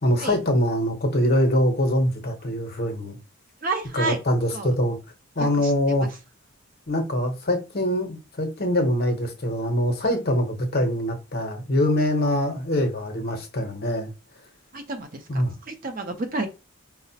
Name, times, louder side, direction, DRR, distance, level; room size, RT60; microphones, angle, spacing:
voice 1, 0.0-3.2 3.9-5.0 5.4-6.1 6.9-14.1 15.3-15.5, left 1 dB, 45° left, 0.7 m, -23 dB
voice 2, 3.6-4.2 4.5-4.7 5.4-5.5 14.7-15.2 15.7-16.5, right 3 dB, 40° right, 0.5 m, -29 dB
4.7 x 2.0 x 2.7 m
head